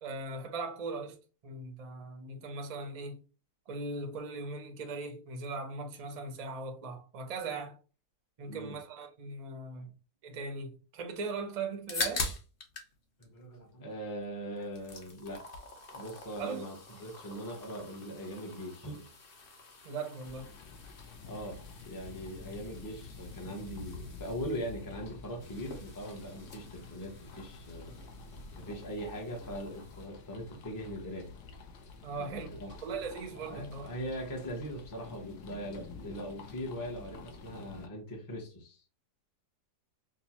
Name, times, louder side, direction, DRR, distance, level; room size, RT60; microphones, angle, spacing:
voice 1, 0.0-1.2 1.4-3.2 3.7-7.8 8.4-9.9 10.2-12.3 16.4-16.6 19.8-20.5 28.4-28.6 32.0-33.9, right 3 dB, 70° right, 0.3 m, -39 dB
voice 2, 8.5-8.8 13.2-15.4 15.9-16.7 17.0-19.1 21.3-27.9 28.6-31.3 32.1-32.7 33.5-38.8, equal, 30° left, 0.4 m, -41 dB
sound 1, 11.6-12.9 13.2-14.2 14.6-30.1, left 3 dB, 45° left, 0.7 m, -44 dB
sound 2, 20.2-37.9, left 4 dB, 75° left, 1.2 m, -49 dB
5.0 x 2.0 x 2.9 m
omnidirectional pair, 1.8 m